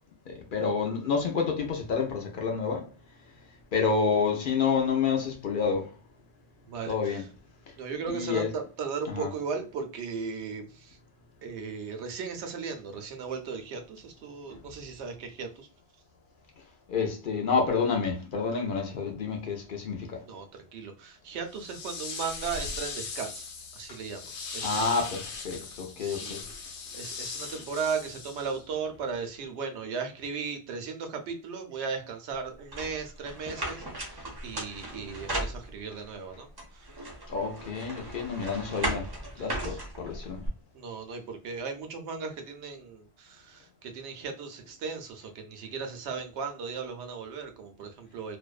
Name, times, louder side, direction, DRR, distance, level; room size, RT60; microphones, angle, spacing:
voice 1, 0.3-2.8 3.7-5.9 6.9-7.2 8.1-8.5 9.1-9.3 16.9-20.2 23.9-24.0 24.6-26.4 37.3-39.1 39.4-40.4, left 5 dB, 60° left, 0.7 m, -29 dB
voice 2, 6.7-7.3 7.8-11.0 11.4-15.7 20.2-23.5 23.7-24.2 24.5-24.9 25.6-25.7 26.0-26.4 26.9-36.9 39.4-39.8 40.7-48.4, right 5 dB, 90° right, 0.9 m, -36 dB
sound 1, 21.5-28.7, left 5 dB, 85° left, 0.9 m, -39 dB
sound 2, 32.7-36.1 36.6-40.5, right 1 dB, 30° right, 0.5 m, -36 dB
2.5 x 2.1 x 2.3 m
omnidirectional pair, 1.1 m